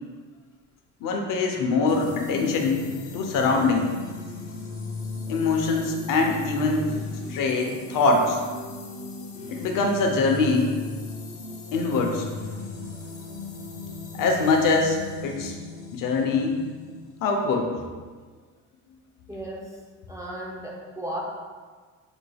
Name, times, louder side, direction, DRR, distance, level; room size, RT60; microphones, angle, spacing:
voice 1, 1.0-2.9 3.1-3.9 5.3-6.9 7.3-8.4 9.5-10.7 11.7-12.3 14.1-15.5 15.9-16.6 17.2-17.7, left 3 dB, 80° left, 2 dB, 0.8 m, -23 dB
sound 1, 1.9-17.6, left 4 dB, 40° left, 0.9 m, -37 dB
voice 2, 19.3-19.8 20.1-21.2, right 1 dB, 10° right, -3 dB, 0.5 m, -35 dB
7.0 x 3.3 x 2.3 m, 1.5 s
cardioid pair, 160°, 32 cm